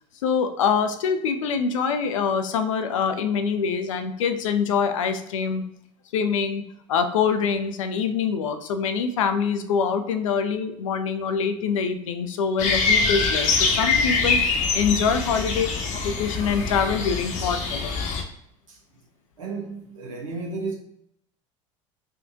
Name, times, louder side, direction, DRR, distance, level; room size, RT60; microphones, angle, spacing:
voice 1, 0.2-5.6 6.1-15.7 16.0-18.0, left 6 dB, 75° left, 8 dB, 0.5 m, -25 dB
sound 1, 12.6-18.2, left 4 dB, 50° left, 0.7 m, -24 dB
voice 2, 19.4-20.7, right 3 dB, 90° right, -2 dB, 0.7 m, -33 dB
3.6 x 2.3 x 2.7 m, 0.76 s
hypercardioid pair, 70°, 17 cm